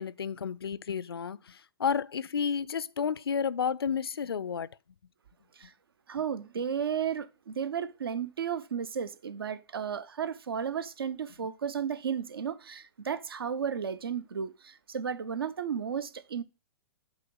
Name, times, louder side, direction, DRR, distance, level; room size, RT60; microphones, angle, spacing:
voice 1, 0.0-4.7, left 7 dB, 75° left, 0.4 m, -31 dB
voice 2, 6.1-16.4, right 7 dB, 70° right, 0.7 m, -34 dB
8.1 x 2.9 x 5.3 m
figure-of-eight pair, 105°, 13 cm